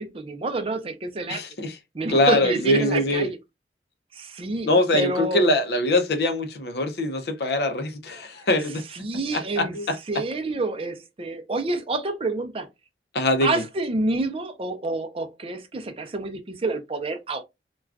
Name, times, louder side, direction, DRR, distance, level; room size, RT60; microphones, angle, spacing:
voice 1, 0.0-1.4 1.9-3.4 4.1-5.5 8.9-9.7 10.1-12.7 13.4-17.4, right 2 dB, 30° right, 0.5 m, -28 dB
voice 2, 1.3-1.8 2.1-3.3 4.6-8.8 9.3-10.0 13.1-13.6, left 1 dB, 65° left, 0.6 m, -23 dB
2.4 x 2.3 x 3.3 m
head